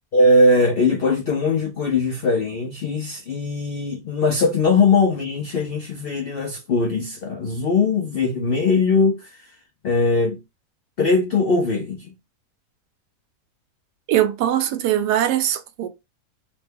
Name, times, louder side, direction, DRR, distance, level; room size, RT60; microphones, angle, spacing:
voice 1, 0.1-9.3 9.8-10.4 11.0-12.1, left 3 dB, 80° left, 0.5 m, -20 dB
voice 2, 14.1-15.9, right 11 dB, 85° right, 1.2 m, -21 dB
3.0 x 2.2 x 3.3 m
omnidirectional pair, 1.7 m